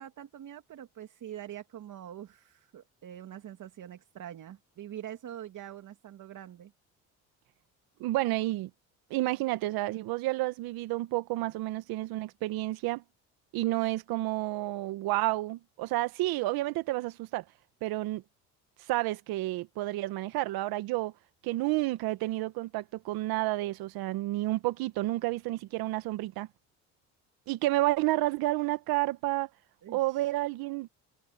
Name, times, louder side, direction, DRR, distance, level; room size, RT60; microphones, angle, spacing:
voice 1, 0.0-6.7 29.8-30.3, right 11 dB, 55° right, 2.7 m, -44 dB
voice 2, 8.0-8.7 9.1-13.0 13.5-17.4 17.8-18.2 18.9-21.1 21.4-26.5 27.5-29.5 29.9-30.9, right 18 dB, 75° right, 1.5 m, -30 dB
supercardioid pair, 75°, 37 cm